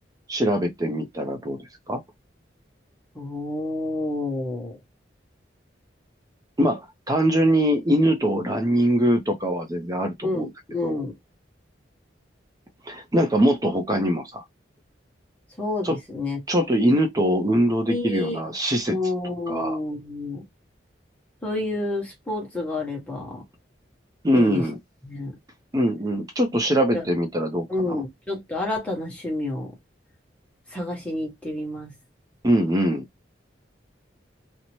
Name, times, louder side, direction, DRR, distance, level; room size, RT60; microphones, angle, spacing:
voice 1, 0.3-1.6 1.9-2.0 6.6-10.5 10.8-11.0 12.9-14.4 15.8-16.0 16.5-18.9 19.5-19.8 24.2-24.8 25.7-28.0 32.4-33.0, equal, 20° right, 0.5 m, -22 dB
voice 2, 3.1-4.8 10.2-11.1 15.6-16.4 17.9-18.4 18.9-20.4 21.4-23.4 24.3-24.7 25.0-25.4 26.9-27.1 27.7-29.7 30.7-31.9, left 2 dB, 5° left, 1.1 m, -29 dB
2.7 x 2.0 x 3.0 m
head